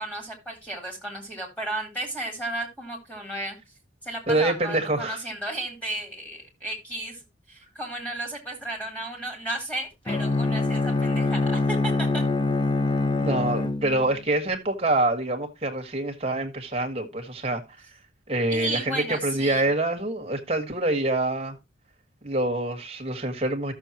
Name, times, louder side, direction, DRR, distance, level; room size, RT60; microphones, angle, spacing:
voice 1, 0.0-3.6 4.0-12.2 18.5-19.7, right 1 dB, 5° left, 3.6 m, -34 dB
voice 2, 4.3-5.2 13.2-17.6 18.3-21.6 22.2-23.7, right 2 dB, 30° right, 1.6 m, -26 dB
Bowed string instrument, 10.1-14.3, left 2 dB, 25° left, 0.6 m, -25 dB
14.0 x 6.9 x 2.9 m
head